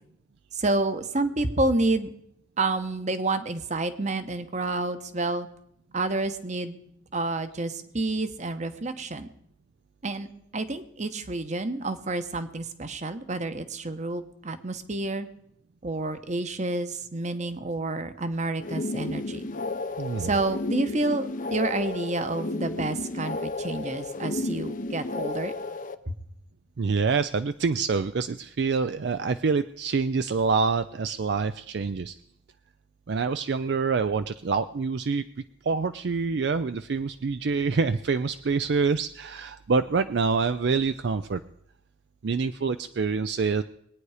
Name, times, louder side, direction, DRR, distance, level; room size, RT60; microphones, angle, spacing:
voice 1, 0.5-2.1 2.6-5.5 5.9-6.8 7.1-9.3 10.0-10.3 10.5-15.3 15.8-19.4 20.2-25.5, right 2 dB, 40° right, 10 dB, 1.0 m, -29 dB
sound 1, 18.6-25.9, left 2 dB, 45° left, 0.7 m, -32 dB
voice 2, 20.0-20.4 26.8-32.1 33.1-35.2 35.6-41.4 42.2-43.6, right 4 dB, 60° right, 11 dB, 0.4 m, -26 dB
21.5 x 9.4 x 4.9 m, 0.73 s
head